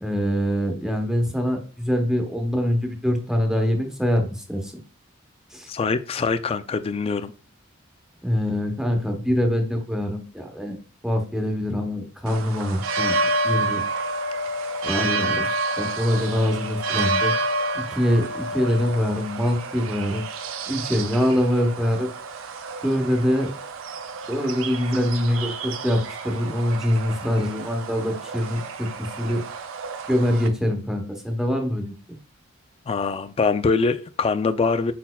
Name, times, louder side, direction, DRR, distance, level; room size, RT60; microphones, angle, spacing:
voice 1, 0.0-4.7 5.5-5.7 8.2-10.8 11.0-13.2 13.4-13.8 14.8-15.5 15.8-17.3 17.7-20.2 20.7-22.1 22.8-23.5 24.3-29.4 30.1-31.9, equal, 5° right, 0.9 m, -24 dB
voice 2, 5.7-7.3 32.9-34.9, left 4 dB, 30° left, 0.3 m, -23 dB
sound 1, 12.3-30.5, right 2 dB, 80° right, 0.6 m, -29 dB
5.5 x 4.1 x 2.2 m
head